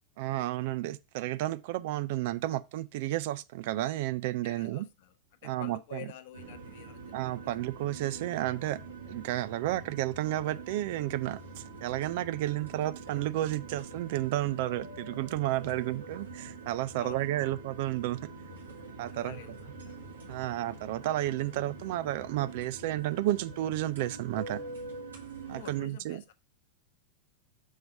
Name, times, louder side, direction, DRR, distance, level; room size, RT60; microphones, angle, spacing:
voice 1, 0.2-4.8 5.4-6.1 7.1-8.8 9.1-18.2 19.0-19.4 20.3-24.6 25.5-26.2, right 15 dB, 50° right, 0.4 m, -32 dB
voice 2, 4.4-5.1 5.4-7.6 17.0-17.5 19.1-20.5 25.4-26.3, left 11 dB, 50° left, 0.7 m, -49 dB
sound 1, 6.3-25.8, right 3 dB, 70° right, 1.5 m, -45 dB
6.4 x 3.2 x 5.7 m
figure-of-eight pair, 90°, 0 cm